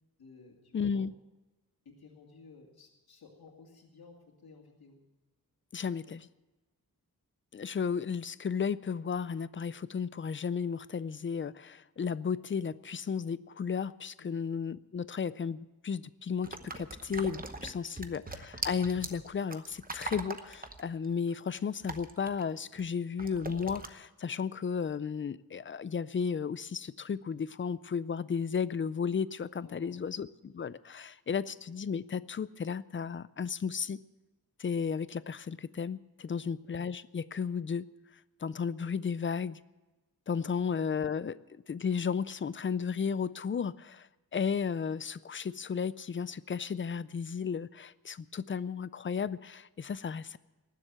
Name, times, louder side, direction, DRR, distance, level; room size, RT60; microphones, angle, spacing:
voice 1, 0.2-1.1 1.8-4.2 4.4-5.0 14.2-14.4 17.6-18.1 29.6-30.1 36.2-36.5, left 4 dB, 80° left, -2 dB, 2.5 m, -56 dB
voice 2, 0.7-1.1 5.7-6.3 7.5-34.0 34.6-37.9 38.4-39.6 40.3-41.4 41.7-50.4, left 6 dB, 35° left, 17 dB, 0.4 m, -34 dB
sound 1, 16.4-22.8 23.2-23.9, right 3 dB, 25° right, 0.9 m, -41 dB
19.0 x 7.6 x 8.9 m, 1.1 s
wide cardioid pair, 160°, 36 cm